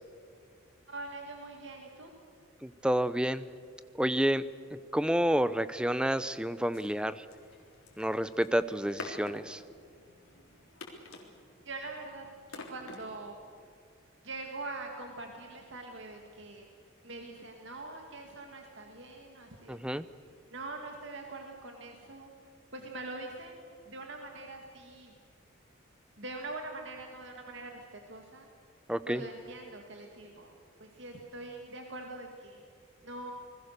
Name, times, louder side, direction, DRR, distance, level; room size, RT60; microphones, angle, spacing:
voice 1, 0.9-2.1 11.6-13.4 14.2-16.7 17.0-20.0 20.5-22.3 22.7-25.1 26.2-28.5 29.1-32.6 33.0-33.3, right 2 dB, 60° right, 2 dB, 2.2 m, -43 dB
voice 2, 2.6-3.5 4.0-4.4 4.9-7.2 8.0-9.6 19.7-20.1 28.9-29.2, equal, 5° right, 14 dB, 0.6 m, -29 dB
sound 1, 6.7-13.4, left 3 dB, 90° left, 3.8 m, -49 dB
29.0 x 20.5 x 6.8 m, 2.2 s
head